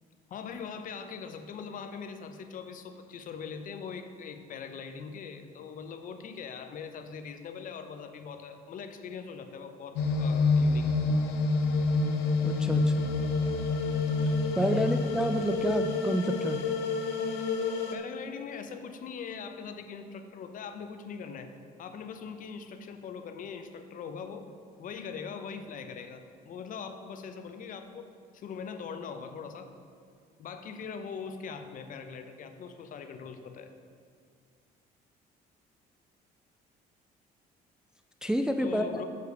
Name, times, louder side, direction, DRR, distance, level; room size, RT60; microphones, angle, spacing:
voice 1, 0.3-10.9 14.7-15.0 17.9-21.5 21.8-24.5 24.8-28.1 28.3-29.7 30.4-33.7 38.6-39.1, left 6 dB, 55° left, 8 dB, 0.7 m, -41 dB
sound 1, 10.0-18.0, left 3 dB, 85° left, 0.9 m, -27 dB
voice 2, 12.4-13.1 14.2-16.6 38.2-39.0, equal, 5° right, 6 dB, 0.3 m, -29 dB
6.7 x 6.5 x 5.0 m, 2.1 s
cardioid pair, 110°, 17 cm